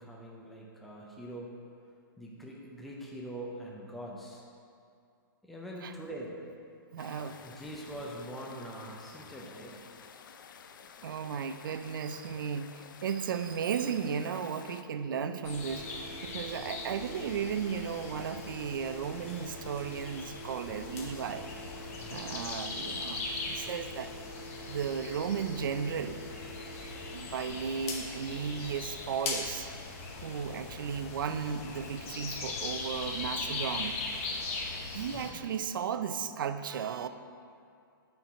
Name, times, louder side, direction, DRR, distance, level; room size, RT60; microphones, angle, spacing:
voice 1, 0.0-1.5 2.2-4.4 5.4-6.4 7.4-9.8 22.0-22.3 27.5-27.8 35.1-35.4, right 1 dB, ahead, -3 dB, 0.4 m, -43 dB
voice 2, 6.9-7.4 11.0-21.5 22.1-24.1 24.7-26.2 26.9-29.7 30.2-34.3 34.9-37.1, right 7 dB, 65° right, 10 dB, 0.4 m, -35 dB
sound 1, 7.0-14.8, left 7 dB, 60° left, 0.4 m, -52 dB
Telephone, 14.9-27.1, right 1 dB, 25° right, 1.5 m, -48 dB
sound 2, 15.4-35.3, left 3 dB, 40° left, 0.8 m, -40 dB
6.8 x 4.6 x 5.7 m, 2.4 s
hypercardioid pair, 165°, 12 cm